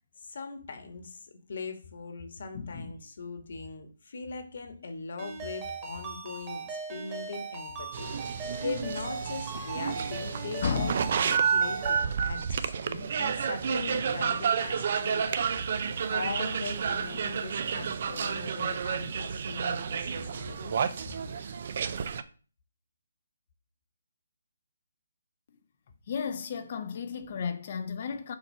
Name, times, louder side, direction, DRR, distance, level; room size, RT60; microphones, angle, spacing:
voice 1, 0.2-15.4 15.7-20.9, left 4 dB, 55° left, 1.4 m, -40 dB
voice 2, 2.5-2.9 10.6-10.9 26.1-28.3, left 6 dB, 40° left, 0.6 m, -33 dB
Ringtone, 5.2-12.1, right 3 dB, 20° right, 1.6 m, -39 dB
sound 1, 7.9-22.2, right 6 dB, 45° right, 0.5 m, -30 dB
6.5 x 2.9 x 5.5 m
hypercardioid pair, 165°, 0 cm